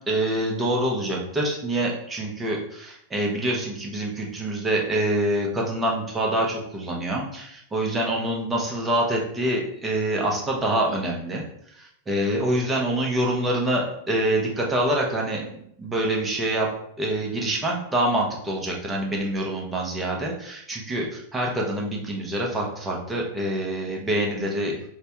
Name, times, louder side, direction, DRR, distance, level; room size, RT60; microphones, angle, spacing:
voice 1, 0.1-11.4 11.8-16.7 17.0-24.8, right 1 dB, 15° right, -1 dB, 0.7 m, -26 dB
3.2 x 2.1 x 2.8 m, 0.71 s
figure-of-eight pair, 90°, 0 cm